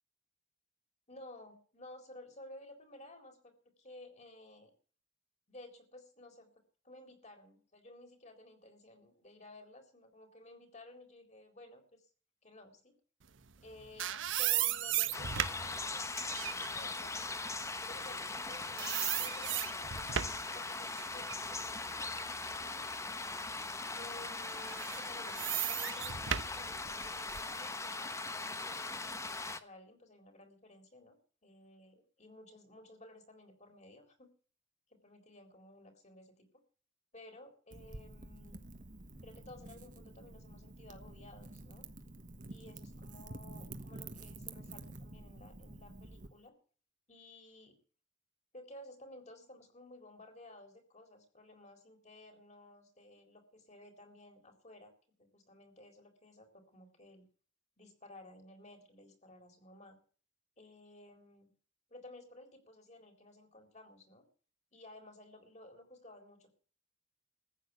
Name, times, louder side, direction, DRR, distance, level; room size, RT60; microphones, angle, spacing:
voice 1, 1.1-4.7 5.5-6.5 6.8-12.1 12.4-12.9 13.6-17.3 17.9-22.8 23.9-26.2 26.5-34.3 34.9-36.5 37.1-38.6 39.2-41.9 42.5-46.6 47.1-47.8 48.5-54.9 55.2-57.3 57.8-60.0 60.6-61.5 61.9-64.3 64.7-66.5, left 1 dB, 35° left, 5 dB, 4.0 m, -55 dB
sound 1, 13.6-18.5 18.8-20.5 21.0-22.9 23.4-23.5 24.6-27.6, right 11 dB, 80° right, 1.0 m, -36 dB
sound 2, 15.1-29.6, left 3 dB, 15° left, 1.0 m, -40 dB
Wind / Fire, 37.7-46.3, right 2 dB, 45° right, 1.5 m, -49 dB
15.0 x 9.0 x 8.0 m, 0.42 s
head